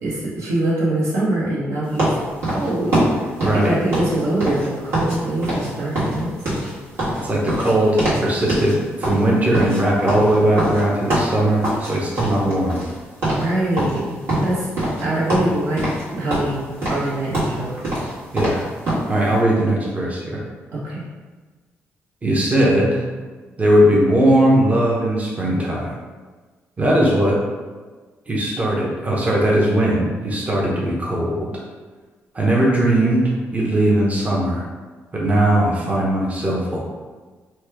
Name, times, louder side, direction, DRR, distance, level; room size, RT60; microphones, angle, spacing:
voice 1, 0.0-2.1 2.5-3.0 3.4-6.3 13.2-14.1 14.4-14.7 15.0-15.8 16.1-17.8 20.7-21.0, right 1 dB, 80° right, -7 dB, 1.0 m, -23 dB
sound 1, 2.0-5.2 5.4-5.7 5.9-8.2 8.5-8.7 9.0-11.9 12.2-13.0 13.2-13.5 13.8-15.0 15.3-16.0 16.3-19.1, right 1 dB, 60° right, 1.4 m, -23 dB
voice 2, 3.4-3.8 7.2-12.8 18.3-18.7 19.1-20.4 22.2-23.0 23.6-25.9 26.8-27.4 28.3-31.6 32.3-34.6 35.1-36.8, right 1 dB, 30° right, -4 dB, 0.7 m, -19 dB
2.9 x 2.2 x 3.4 m, 1.4 s
cardioid pair, 85°, 5 cm